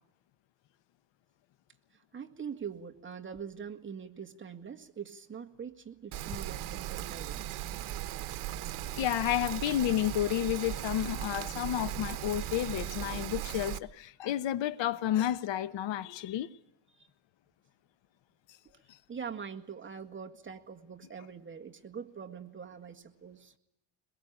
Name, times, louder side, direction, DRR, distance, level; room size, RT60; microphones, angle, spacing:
voice 1, 1.9-7.6 16.9-17.1 19.1-23.5, right 7 dB, 25° right, 1.7 m, -43 dB
Rain, 6.1-13.8, right 13 dB, 75° right, 1.2 m, -38 dB
voice 2, 9.0-16.5 18.9-19.0, left 12 dB, 60° left, 1.0 m, -31 dB
22.5 x 22.0 x 8.7 m
cardioid pair, 145°, 50 cm